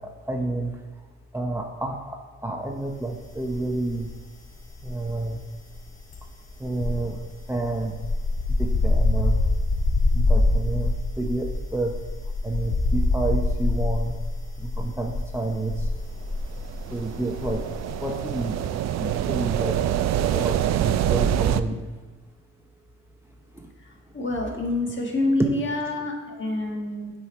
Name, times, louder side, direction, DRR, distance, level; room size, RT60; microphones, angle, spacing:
voice 1, 0.0-0.8 1.3-4.1 4.8-5.4 6.6-7.2 7.5-7.9 8.6-9.4 10.1-11.9 12.4-14.2 14.6-15.9 16.9-17.6 18.0-18.6 19.0-19.8 20.3-21.8 23.5-23.7, right 2 dB, 10° right, 2 dB, 0.8 m, -29 dB
sound 1, 3.4-4.2 4.4-18.0 18.2-18.5, left 2 dB, 55° left, 1.4 m, -25 dB
sound 2, 16.4-21.6, right 10 dB, 65° right, 0.4 m, -25 dB
voice 2, 23.8-27.1, left 2 dB, 40° left, 1 dB, 1.6 m, -27 dB
8.2 x 4.5 x 4.4 m, 1.2 s
cardioid pair, 90°, 30 cm